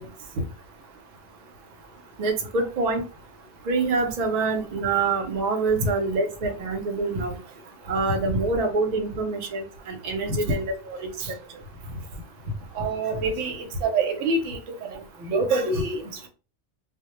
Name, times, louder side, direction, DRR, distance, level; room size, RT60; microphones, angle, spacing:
voice 1, 2.2-3.0 3.7-7.4 7.9-11.4, right 3 dB, 55° right, 0.4 m, -26 dB
voice 2, 12.7-16.3, right 2 dB, 80° right, 0.9 m, -26 dB
2.1 x 2.1 x 2.9 m
omnidirectional pair, 1.3 m